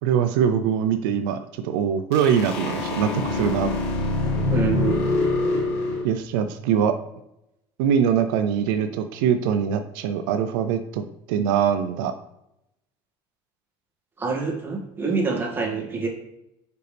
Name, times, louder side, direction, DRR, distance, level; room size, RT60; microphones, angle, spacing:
voice 1, 0.0-1.4 1.6-3.7 6.0-7.0 7.8-12.1, right 8 dB, 90° right, 8 dB, 0.5 m, -23 dB
sound 1, 2.1-6.0, left 3 dB, 70° left, 1.6 m, -25 dB
voice 2, 4.5-5.0 14.2-16.1, right 4 dB, 20° right, -1 dB, 1.9 m, -26 dB
6.7 x 5.2 x 3.4 m, 0.83 s
supercardioid pair, 115°, 11 cm